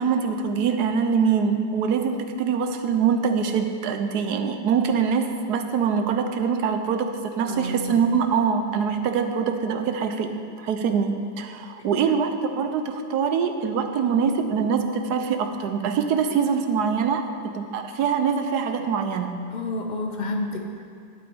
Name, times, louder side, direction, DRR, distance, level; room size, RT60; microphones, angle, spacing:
voice 1, 0.0-10.3 10.6-19.4, right 6 dB, 75° right, 7 dB, 1.3 m, -24 dB
voice 2, 7.5-8.0 11.9-12.1 19.5-20.8, left 2 dB, 65° left, 3 dB, 0.4 m, -30 dB
11.5 x 8.4 x 4.5 m, 2.4 s
omnidirectional pair, 1.8 m